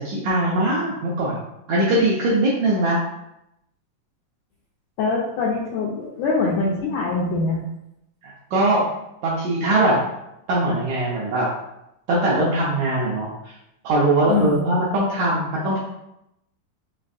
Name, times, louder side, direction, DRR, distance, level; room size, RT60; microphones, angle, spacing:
voice 1, 0.0-1.4 1.7-3.0 8.2-8.8 9.2-10.0 10.5-11.5 12.1-13.3 13.8-15.8, right 1 dB, 85° right, -6 dB, 1.7 m, -21 dB
voice 2, 5.0-7.6 14.3-14.6, left 3 dB, 80° left, -4 dB, 1.7 m, -23 dB
5.5 x 3.2 x 2.6 m, 0.85 s
omnidirectional pair, 4.1 m